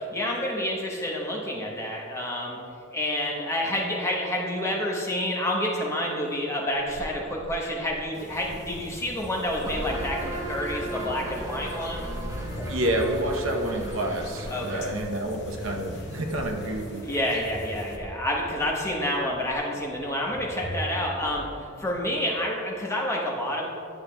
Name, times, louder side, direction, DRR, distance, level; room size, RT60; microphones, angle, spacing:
voice 1, 0.0-2.6 2.9-12.1 14.5-15.0 17.0-23.7, left 1 dB, 15° left, -2 dB, 1.0 m, -29 dB
sound 1, 6.7-22.1, equal, 30° left, 1.5 m, -42 dB
sound 2, 8.1-18.0, left 2 dB, 50° left, 0.8 m, -45 dB
sound 3, 9.6-17.0, right 1 dB, 15° right, 0.9 m, -37 dB
voice 2, 12.7-17.1, right 1 dB, 65° right, 2 dB, 0.8 m, -28 dB
10.5 x 6.8 x 2.2 m, 2.7 s
head